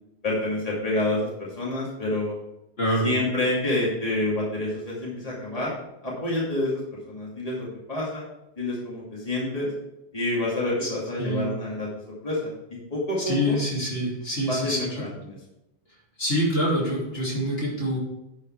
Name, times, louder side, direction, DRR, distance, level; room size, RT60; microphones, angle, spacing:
voice 1, 0.2-2.3 3.0-5.7 6.0-8.2 8.6-9.7 10.1-11.9 12.2-12.5 12.9-13.6 14.4-15.4, left 1 dB, 35° left, -6 dB, 2.6 m, -28 dB
voice 2, 13.2-15.0 16.2-18.0, equal, 60° left, -5 dB, 3.0 m, -26 dB
10.5 x 5.5 x 4.7 m, 0.90 s
omnidirectional pair, 1.1 m